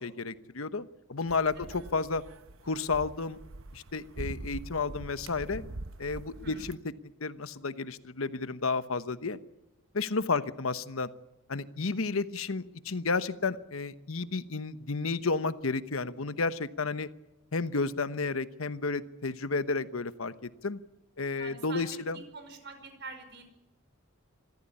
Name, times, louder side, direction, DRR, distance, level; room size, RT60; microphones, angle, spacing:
voice 1, 0.0-2.2 2.6-3.4 3.7-5.6 6.0-6.8 7.2-9.4 9.9-11.1 11.5-17.1 17.5-20.8 21.2-22.2, left 4 dB, 75° left, 12 dB, 1.1 m, -32 dB
sound 1, 1.3-6.8, right 2 dB, 70° right, 0.9 m, -44 dB
voice 2, 6.3-6.7 10.3-10.4 21.4-23.4, right 4 dB, 55° right, 7 dB, 5.3 m, -46 dB
25.5 x 14.5 x 10.0 m, 0.97 s
head